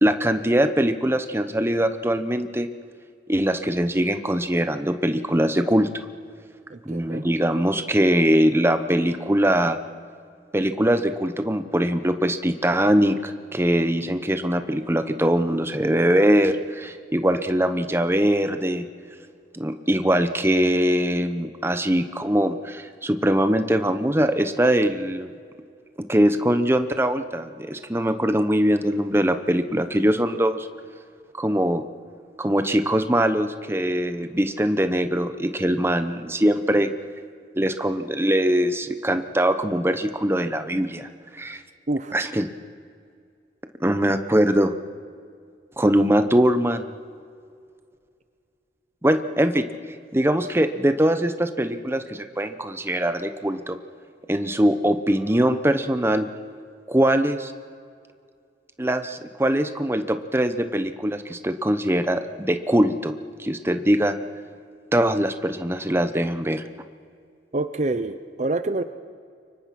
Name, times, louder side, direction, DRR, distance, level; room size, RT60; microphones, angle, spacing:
voice 1, 0.0-2.7 3.3-5.9 6.9-9.8 10.5-18.9 19.5-25.3 26.0-30.7 31.4-31.8 32.4-36.9 37.6-41.6 42.1-42.5 43.8-44.7 45.8-46.9 49.0-49.7 50.1-53.8 54.3-56.3 56.9-57.5 58.8-63.1 63.4-64.2 64.9-66.6, right 1 dB, 15° right, 9 dB, 1.0 m, -22 dB
voice 2, 6.7-7.2 41.9-42.1 67.5-68.8, right 2 dB, 40° right, 11 dB, 0.7 m, -27 dB
29.0 x 24.5 x 6.1 m, 2.2 s
head